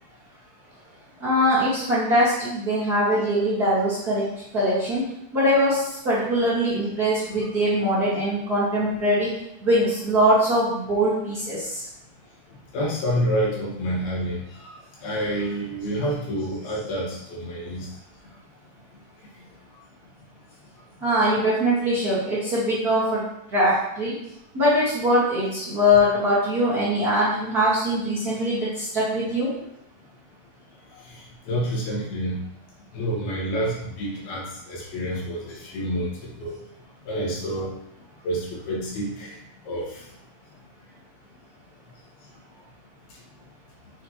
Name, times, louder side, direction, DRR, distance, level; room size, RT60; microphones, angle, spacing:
voice 1, 1.2-4.2 4.5-5.0 5.3-9.3 9.6-11.8 21.0-23.2 23.5-24.1 24.5-29.5, equal, 35° right, -10 dB, 1.7 m, -22 dB
voice 2, 12.7-17.9 31.0-32.4 32.9-36.5 37.1-37.7 38.2-40.0, equal, 85° left, -4 dB, 3.7 m, -28 dB
7.3 x 6.0 x 3.1 m, 0.79 s
omnidirectional pair, 4.3 m